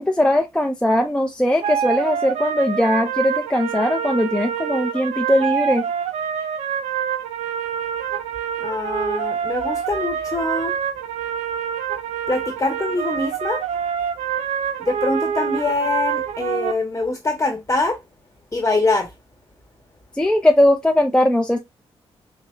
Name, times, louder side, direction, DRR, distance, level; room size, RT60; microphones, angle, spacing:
voice 1, 0.0-5.9 20.1-21.6, left 1 dB, 10° left, 0.5 m, -19 dB
sound 1, 1.6-16.7, right 8 dB, 90° right, 0.4 m, -26 dB
voice 2, 8.6-10.8 12.3-13.6 14.8-18.0 18.5-19.1, left 2 dB, 30° left, 1.0 m, -23 dB
6.0 x 2.1 x 2.2 m
supercardioid pair, 55°, 11 cm